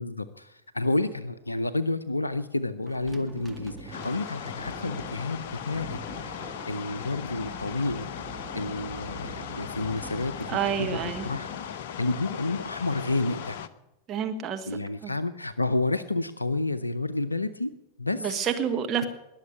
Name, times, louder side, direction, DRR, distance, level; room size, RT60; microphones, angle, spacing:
voice 1, 0.0-8.1 8.5-11.5 12.0-13.6 14.7-18.5, left 2 dB, 85° left, 0.6 m, -30 dB
sound 1, 2.9-12.3, right 2 dB, 10° right, 2.0 m, -44 dB
sound 2, 3.9-13.7, left 9 dB, 55° left, 0.8 m, -38 dB
voice 2, 10.5-11.3 14.1-15.1 18.2-19.1, right 8 dB, 30° right, 1.4 m, -29 dB
20.5 x 7.3 x 9.7 m
figure-of-eight pair, 90°, 0 cm